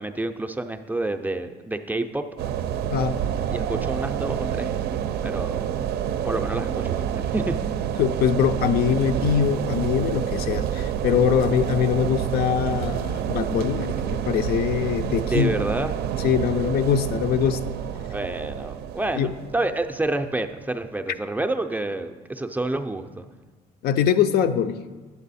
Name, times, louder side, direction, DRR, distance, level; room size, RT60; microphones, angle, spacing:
voice 1, 0.0-2.2 3.5-4.7 5.2-5.6 6.2-7.0 7.3-7.6 15.2-15.9 18.1-23.2, right 2 dB, 10° right, 6 dB, 0.4 m, -28 dB
sound 1, 2.4-20.3, right 9 dB, 75° right, 0.5 m, -28 dB
voice 2, 2.9-3.2 8.0-15.5 16.2-17.8 19.1-19.3 23.8-24.8, left 8 dB, 70° left, 10 dB, 0.5 m, -23 dB
9.0 x 6.9 x 4.1 m, 1.3 s
cardioid pair, 110°, 17 cm